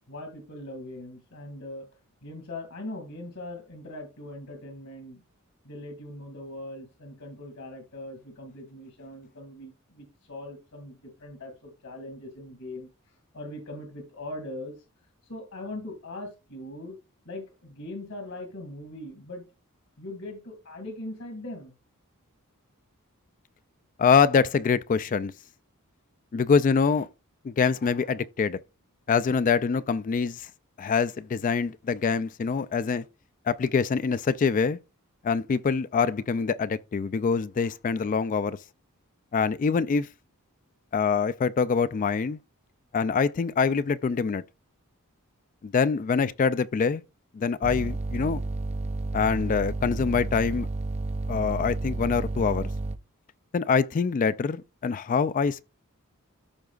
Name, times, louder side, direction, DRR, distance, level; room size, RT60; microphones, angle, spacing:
voice 1, 0.1-1.9 2.2-5.2 5.6-12.9 13.3-14.7 15.3-17.0 17.3-19.4 20.0-21.7, left 1 dB, 75° left, 2.2 m, -40 dB
voice 2, 24.0-25.3 26.3-27.1 27.4-28.6 29.1-30.5 30.8-33.0 33.5-34.8 35.2-38.6 39.3-40.1 40.9-42.4 42.9-44.4 45.6-47.0 47.3-48.4 49.1-50.7 51.3-52.7 53.5-55.6, left 5 dB, 40° left, 0.3 m, -25 dB
sound 1, 47.6-53.0, right 3 dB, 30° right, 0.4 m, -31 dB
14.0 x 4.7 x 2.4 m
head